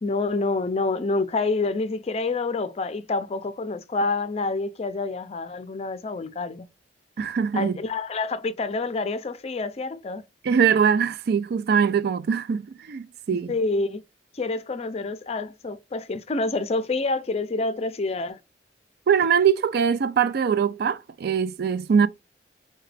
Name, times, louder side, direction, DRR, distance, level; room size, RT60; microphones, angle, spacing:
voice 1, 0.0-6.7 7.5-10.2 13.5-14.0 14.3-18.4, left 3 dB, 35° left, 0.4 m, -27 dB
voice 2, 7.2-7.7 10.4-13.5 19.1-22.1, right 7 dB, 60° right, 0.4 m, -22 dB
4.7 x 2.2 x 3.2 m
head